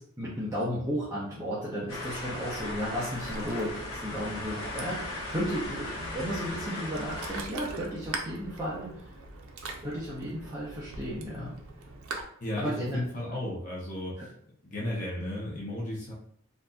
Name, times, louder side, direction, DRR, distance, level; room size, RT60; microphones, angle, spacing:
voice 1, 0.0-9.1 9.8-11.6 12.6-13.0 14.2-14.3, equal, 15° right, -8 dB, 0.7 m, -34 dB
sound 1, 1.9-7.4, left 2 dB, 85° left, 1.1 m, -38 dB
Ocean, 2.2-12.2, right 3 dB, 90° right, 0.5 m, -42 dB
voice 2, 12.4-14.3 14.6-16.1, left 1 dB, 40° left, -4 dB, 0.8 m, -34 dB
3.8 x 2.6 x 2.3 m, 0.64 s
head